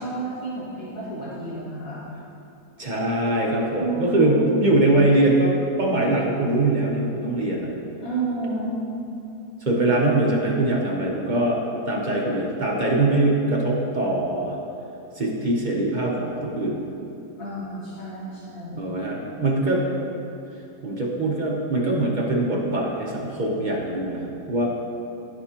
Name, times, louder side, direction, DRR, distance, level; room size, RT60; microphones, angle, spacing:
voice 1, 0.0-2.0 3.8-4.4 8.0-8.9 17.4-18.9, right 2 dB, 55° left, -9 dB, 2.2 m, -30 dB
voice 2, 2.8-7.7 9.6-11.6 11.8-14.6 15.1-16.8 18.8-19.8 20.8-24.7, right 2 dB, 40° right, -3 dB, 0.7 m, -22 dB
13.5 x 4.8 x 2.9 m, 2.8 s
omnidirectional pair, 1.9 m